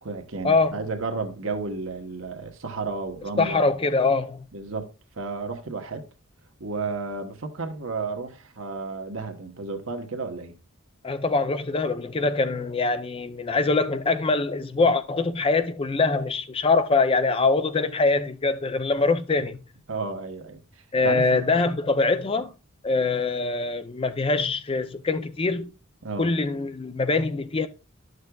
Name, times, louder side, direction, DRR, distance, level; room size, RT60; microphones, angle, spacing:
voice 1, 0.0-3.7 4.5-4.9 5.2-6.1 6.6-10.5 19.9-20.6 21.0-21.4 26.0-26.3, right 3 dB, 70° right, 1.1 m, -32 dB
voice 2, 3.4-4.4 11.0-19.6 20.9-22.5 22.8-25.7 26.2-27.7, left 3 dB, 25° left, 0.4 m, -23 dB
11.5 x 6.4 x 2.3 m
head